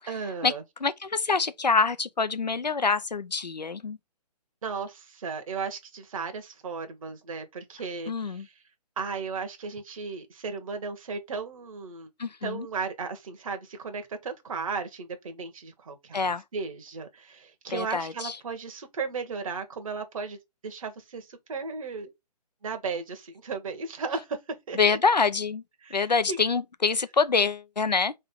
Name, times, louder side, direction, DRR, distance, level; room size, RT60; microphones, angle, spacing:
voice 1, 0.1-0.6 4.6-8.5 9.0-12.1 12.4-20.4 20.6-22.1 22.6-24.4 24.7-25.0 25.8-26.4, right 5 dB, 55° right, 1.1 m, -35 dB
voice 2, 0.8-4.0 8.1-8.5 12.2-12.7 16.1-16.4 17.7-18.4 24.7-25.6 25.9-28.1, left 4 dB, 85° left, 0.6 m, -25 dB
3.7 x 3.3 x 3.5 m
figure-of-eight pair, 135°, 21 cm